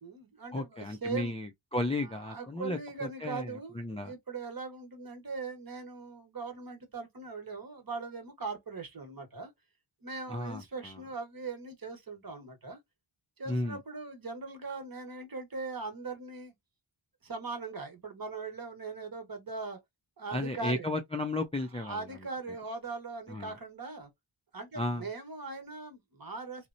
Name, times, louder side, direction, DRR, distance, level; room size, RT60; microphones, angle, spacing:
voice 1, 0.0-1.3 2.1-3.7 4.0-9.5 10.0-12.8 13.4-16.5 17.2-19.8 20.2-20.9 21.8-24.1 24.5-26.7, right 4 dB, 45° right, 1.1 m, -40 dB
voice 2, 0.5-2.8 3.2-4.1 10.3-11.0 13.5-13.8 20.3-22.1 23.3-23.5 24.8-25.1, left 2 dB, 15° left, 0.4 m, -34 dB
2.9 x 2.0 x 2.5 m
cardioid pair, 50°, 49 cm